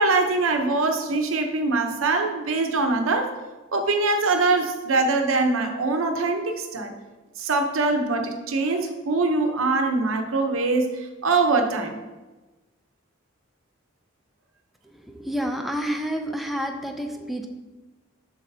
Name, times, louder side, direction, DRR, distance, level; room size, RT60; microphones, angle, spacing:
voice 1, 0.0-3.3 3.7-6.9 7.4-12.0, right 3 dB, 85° right, 5 dB, 0.8 m, -23 dB
voice 2, 14.8-17.5, equal, ahead, 3 dB, 0.5 m, -29 dB
7.8 x 6.1 x 2.7 m, 1.2 s
head